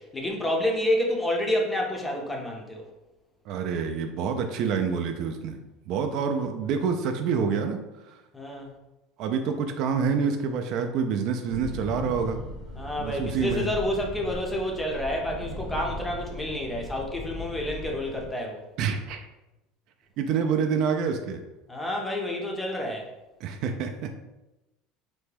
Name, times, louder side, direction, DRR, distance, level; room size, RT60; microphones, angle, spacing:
voice 1, 0.0-2.8 8.3-8.7 12.8-18.6 21.7-23.1, left 1 dB, 10° left, 0 dB, 0.5 m, -29 dB
voice 2, 3.5-5.6 5.9-8.2 9.2-12.4 13.0-13.7 18.8-19.2 20.2-21.4 23.4-24.2, right 6 dB, 50° right, 6 dB, 0.3 m, -27 dB
sound 1, 11.5-18.3, left 1 dB, 50° left, 0.7 m, -38 dB
3.3 x 2.1 x 3.3 m, 0.99 s
cardioid pair, 145°, 0 cm